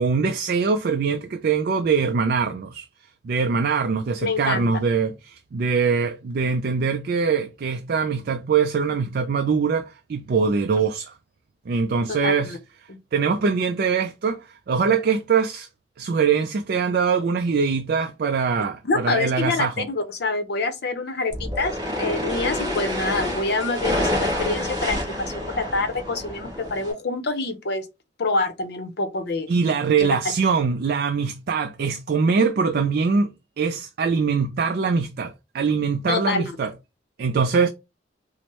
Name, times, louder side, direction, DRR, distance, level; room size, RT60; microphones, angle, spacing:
voice 1, 0.0-2.9 3.2-11.1 11.7-12.6 13.1-14.4 14.7-15.7 16.0-19.7 29.5-33.3 33.6-36.7 37.2-37.7, right 5 dB, 55° right, 0.3 m, -23 dB
voice 2, 4.2-4.7 12.1-12.6 12.9-13.0 18.8-27.9 28.2-29.5 30.0-30.1 36.1-36.5, left 3 dB, 60° left, 0.7 m, -26 dB
sound 1, 21.3-26.9, left 1 dB, 25° right, 2.3 m, -28 dB
4.5 x 2.1 x 3.0 m
head